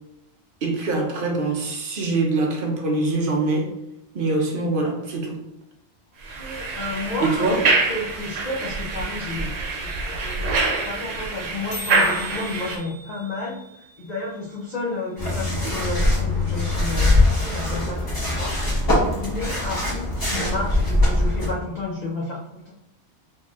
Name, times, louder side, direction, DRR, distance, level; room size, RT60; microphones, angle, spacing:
voice 1, 0.6-3.7 4.1-5.4 7.2-7.6, right 2 dB, 55° right, 1 dB, 0.7 m, -23 dB
sound 1, 6.2-12.8, right 3 dB, 85° right, 1.0 m, -25 dB
voice 2, 6.4-7.6 7.9-10.6 10.8-13.6 14.0-18.6 19.1-22.7, left 2 dB, 50° left, -4 dB, 0.5 m, -31 dB
sound 2, 9.6-9.7 9.9-10.0 10.2-10.4 10.7-10.8 10.9-11.2 11.4-11.5 11.7-15.7, left 1 dB, 75° left, 0.9 m, -42 dB
sound 3, 15.2-21.5, left 2 dB, 20° left, 1.1 m, -22 dB
4.0 x 3.0 x 2.4 m, 0.85 s
omnidirectional pair, 1.3 m